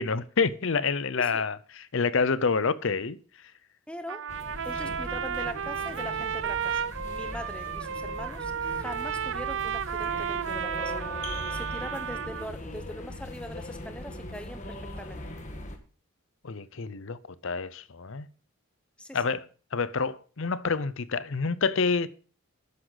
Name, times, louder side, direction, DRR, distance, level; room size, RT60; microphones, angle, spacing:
voice 1, 0.0-1.6 1.9-3.2 16.4-18.3 19.1-19.4 19.7-22.1, left 5 dB, 60° left, 0.6 m, -27 dB
voice 2, 3.9-4.3 4.6-10.9 11.5-15.2 19.0-19.3, left 1 dB, 5° left, 0.8 m, -42 dB
Trumpet, 4.1-12.5, right 7 dB, 55° right, 0.5 m, -33 dB
sound 1, 4.3-15.8, left 1 dB, 35° left, 1.5 m, -40 dB
12.5 x 9.7 x 3.9 m
head